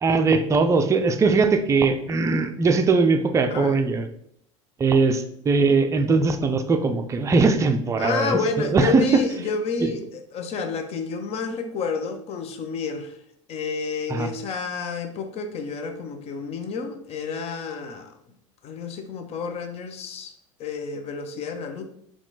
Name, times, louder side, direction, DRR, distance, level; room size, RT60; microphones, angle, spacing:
voice 1, 0.0-4.1 4.8-9.2 9.8-9.9 14.1-14.3, right 4 dB, 20° right, 7 dB, 0.5 m, -20 dB
voice 2, 8.0-13.1 13.5-18.1 18.6-20.3 20.6-21.8, left 4 dB, 40° left, 7 dB, 0.7 m, -30 dB
4.3 x 2.3 x 4.0 m, 0.69 s
figure-of-eight pair, 75°, 17 cm